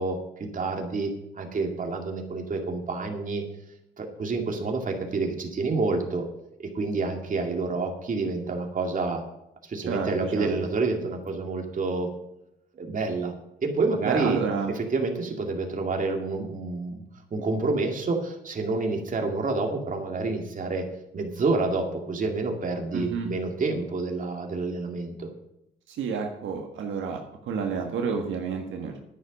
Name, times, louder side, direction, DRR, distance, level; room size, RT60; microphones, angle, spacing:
voice 1, 0.0-3.4 4.0-6.2 6.6-9.2 9.6-12.1 12.8-13.3 13.6-14.4 14.7-17.0 17.3-20.9 21.1-25.3, right 3 dB, 40° right, 3 dB, 2.3 m, -28 dB
voice 2, 9.9-10.5 14.0-14.7 22.9-23.3 25.9-29.0, right 5 dB, 75° right, 2 dB, 1.5 m, -30 dB
10.0 x 9.6 x 5.3 m, 0.83 s
cardioid pair, 90°, 20 cm